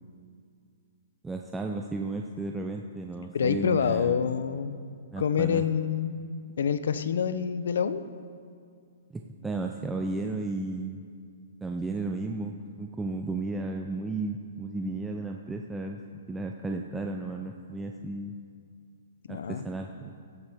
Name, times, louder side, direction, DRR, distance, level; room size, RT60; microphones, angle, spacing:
voice 1, 1.2-4.2 5.1-5.6 9.1-11.1 11.6-16.0 16.3-18.3 19.3-20.1, right 3 dB, 5° right, 2 dB, 0.3 m, -34 dB
voice 2, 3.3-4.8 5.2-6.2 6.6-8.0 19.3-19.6, left 7 dB, 70° left, 12 dB, 0.6 m, -27 dB
15.5 x 8.0 x 3.5 m, 2.2 s
hypercardioid pair, 165°, 0 cm